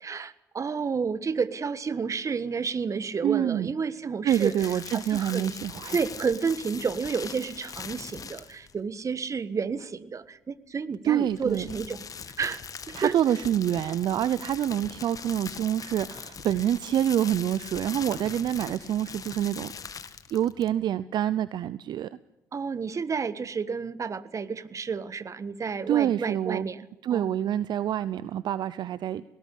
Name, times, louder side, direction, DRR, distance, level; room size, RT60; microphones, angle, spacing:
voice 1, 0.0-4.7 4.9-5.5 5.9-12.0 12.4-12.6 12.9-13.1 22.5-27.3, right 5 dB, 40° right, 16 dB, 1.4 m, -31 dB
voice 2, 3.2-3.7 4.2-6.0 11.0-11.8 12.9-19.7 20.3-22.1 25.9-26.6 27.0-29.2, right 11 dB, 65° right, 17 dB, 0.7 m, -26 dB
sound 1, 4.3-8.8 11.2-20.8, left 6 dB, 45° left, 1.7 m, -41 dB
19.5 x 17.5 x 8.4 m, 0.95 s
hypercardioid pair, 55°, 8 cm